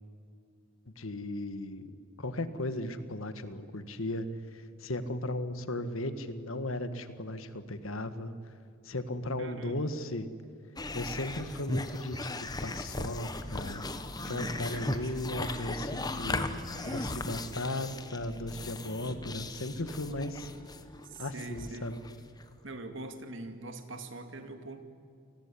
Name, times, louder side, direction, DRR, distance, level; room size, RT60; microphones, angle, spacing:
voice 1, 1.0-4.3 4.5-8.3 8.8-10.3 10.9-12.3 12.6-13.8 14.2-20.5 21.2-22.0, left 1 dB, 75° left, 11 dB, 1.7 m, -36 dB
voice 2, 9.4-9.9 14.2-15.1 16.7-17.4 21.1-21.9 22.6-24.8, right 2 dB, 60° right, 7 dB, 2.3 m, -43 dB
sound 1, 10.8-22.5, left 2 dB, 20° left, 1.2 m, -37 dB
28.5 x 19.0 x 9.9 m, 2.5 s
head